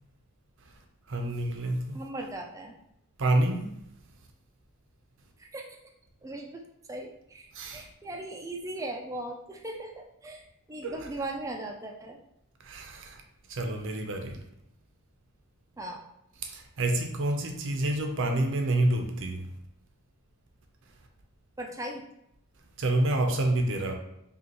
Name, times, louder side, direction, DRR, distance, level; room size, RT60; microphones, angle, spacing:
voice 1, 1.1-2.1 3.2-3.7 7.5-7.9 10.8-11.0 12.6-13.2 13.5-14.4 16.4-19.5 22.8-23.9, right 1 dB, 55° right, 0.6 m, -28 dB
voice 2, 1.9-2.7 5.4-5.6 6.2-6.6 6.9-12.2 15.8-16.0 21.6-22.0, right 1 dB, 15° right, 0.4 m, -38 dB
5.1 x 2.4 x 2.9 m
head